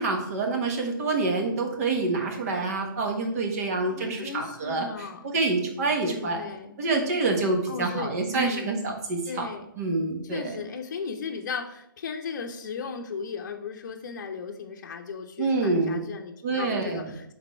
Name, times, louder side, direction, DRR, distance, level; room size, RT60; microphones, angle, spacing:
voice 1, 0.0-4.9 5.3-6.4 6.8-9.5 9.8-10.5 15.4-16.0 16.4-17.1, right 3 dB, 45° right, 2 dB, 1.4 m, -27 dB
voice 2, 3.9-5.3 6.0-6.8 7.7-8.7 9.2-9.7 10.2-17.3, left 5 dB, 55° left, 4 dB, 0.7 m, -36 dB
5.9 x 4.0 x 4.3 m, 0.77 s
hypercardioid pair, 140°, 12 cm